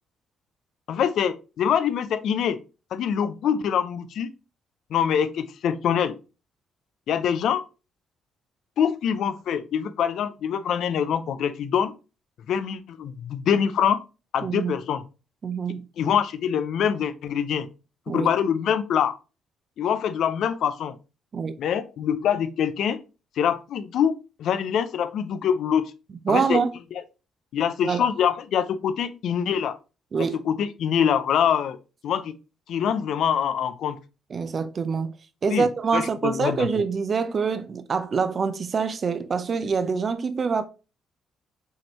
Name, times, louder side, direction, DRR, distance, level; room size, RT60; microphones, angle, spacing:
voice 1, 0.9-2.6 2.9-4.3 4.9-6.2 7.1-7.6 8.8-11.9 12.5-14.0 14.3-15.0 16.0-17.7 18.1-19.2 19.8-21.0 21.6-23.0 23.4-24.1 24.4-25.9 26.3-26.6 27.5-29.8 30.5-31.8 32.0-32.3 32.7-34.0 35.5-35.7 35.9-36.7, left 8 dB, 75° left, 0.5 m, -24 dB
voice 2, 14.4-14.7 15.4-15.9 18.1-18.3 21.3-21.6 26.2-26.7 27.8-28.1 30.1-30.4 34.3-35.2 35.4-40.6, right 5 dB, 45° right, 0.6 m, -25 dB
6.3 x 2.6 x 2.9 m
cardioid pair, 90°, 0 cm